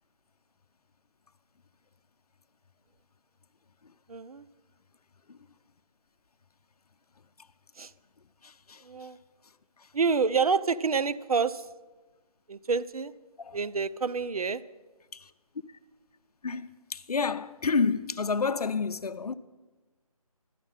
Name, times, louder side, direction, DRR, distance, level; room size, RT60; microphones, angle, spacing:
voice 1, 4.1-4.4 7.8-7.9 8.8-9.2 9.9-11.7 12.5-13.1 13.5-14.6, right 5 dB, 70° right, 0.5 m, -28 dB
voice 2, 8.4-8.8 13.4-13.6 15.1-15.3 16.4-19.3, left 5 dB, 80° left, 0.6 m, -30 dB
12.0 x 7.3 x 5.6 m
figure-of-eight pair, 180°, 19 cm